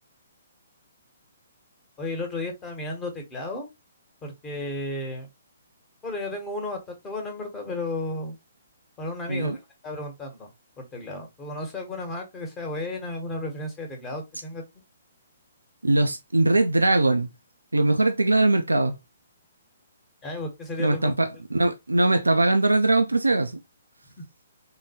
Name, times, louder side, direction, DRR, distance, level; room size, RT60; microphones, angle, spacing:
voice 1, 2.0-3.7 4.2-5.3 6.0-8.4 9.0-9.6 9.8-10.5 10.8-14.6 20.2-21.1 24.2-24.3, left 2 dB, 15° left, 1.1 m, -33 dB
voice 2, 15.8-17.3 17.7-19.0 20.8-23.6, right 2 dB, 90° right, 0.4 m, -21 dB
3.6 x 2.2 x 2.8 m
figure-of-eight pair, 130°, 0 cm